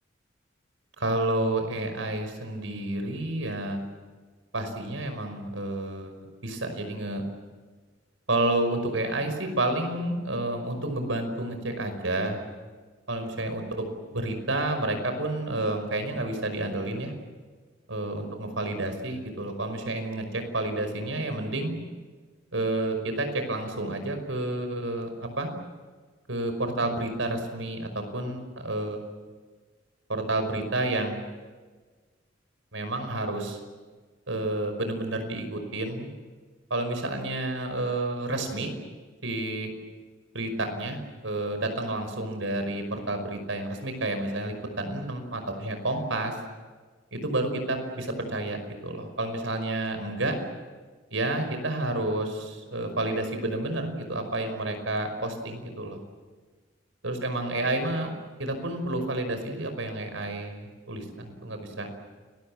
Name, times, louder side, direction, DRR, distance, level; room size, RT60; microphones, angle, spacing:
voice 1, 1.0-3.8 4.5-6.1 6.4-7.2 8.3-12.4 13.1-13.9 14.1-17.1 17.9-21.7 22.5-25.5 26.3-29.0 30.1-31.2 32.7-33.6 34.3-36.1 36.7-38.7 39.2-39.7 40.3-46.4 47.1-50.4 51.1-56.0 57.0-58.1 58.4-61.9, right 2 dB, 90° right, 7 dB, 5.5 m, -30 dB
30.0 x 21.5 x 7.5 m, 1.4 s
head